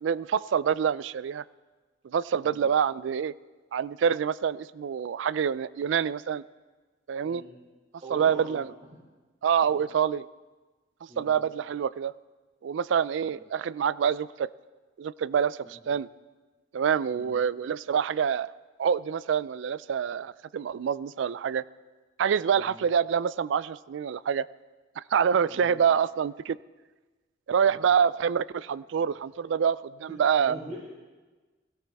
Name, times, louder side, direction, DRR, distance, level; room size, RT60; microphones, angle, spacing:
voice 1, 0.0-1.4 2.0-3.3 3.7-6.4 7.1-7.4 8.1-8.6 9.4-10.3 11.2-12.1 12.6-14.5 15.0-16.1 16.7-18.5 18.8-21.6 22.2-24.5 25.0-26.6 27.5-30.5, right 7 dB, 75° right, 19 dB, 0.3 m, -26 dB
voice 2, 7.2-7.5 8.0-8.6 8.9-9.0 9.6-9.8 11.1-11.3 13.2-13.3 17.1-17.3 22.5-22.7 25.5-25.7 27.6-27.8 30.1-30.9, equal, 40° right, -4 dB, 3.2 m, -43 dB
17.0 x 16.5 x 3.5 m, 1.3 s
head